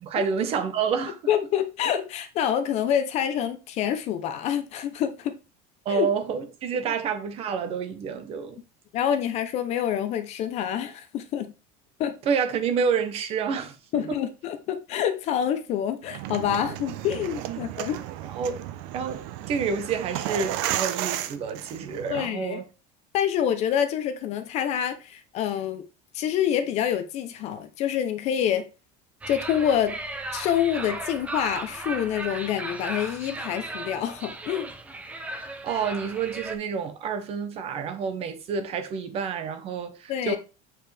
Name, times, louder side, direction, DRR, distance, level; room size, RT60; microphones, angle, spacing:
voice 1, 0.0-1.5 5.8-8.6 12.3-13.7 14.1-14.2 17.5-17.7 18.2-18.6 18.9-22.7 35.4-40.4, right 6 dB, 30° right, 1.0 m, -29 dB
voice 2, 1.3-5.4 5.9-6.1 8.9-11.5 12.0-12.2 13.9-18.0 22.1-22.6 23.1-25.8 26.1-28.6 29.3-30.0 30.3-34.7 40.1-40.4, left 9 dB, 35° left, 0.7 m, -27 dB
sound 1, 16.0-22.2, right 12 dB, 60° right, 0.7 m, -33 dB
sound 2, 29.2-36.6, right 2 dB, 5° right, 0.6 m, -36 dB
8.2 x 4.6 x 3.4 m
cardioid pair, 175°, 19 cm